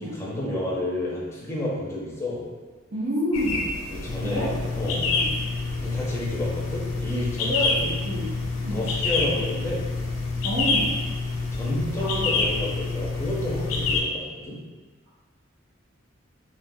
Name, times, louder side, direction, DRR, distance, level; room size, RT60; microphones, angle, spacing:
voice 1, 0.0-2.4 3.9-5.2 5.8-7.9 8.7-9.8 11.5-14.6, left 1 dB, 15° left, -5 dB, 0.5 m, -31 dB
voice 2, 2.9-3.7 4.2-4.5 5.1-5.3 7.4-7.7 8.1-8.3 8.6-8.8 10.4-10.9 12.0-12.3, equal, 85° right, -10 dB, 0.6 m, -28 dB
sound 1, 3.3-14.0, left 3 dB, 85° left, 0.4 m, -29 dB
sound 2, 4.0-14.0, left 4 dB, 35° right, 0.6 m, -31 dB
3.2 x 2.3 x 2.6 m, 1.4 s
head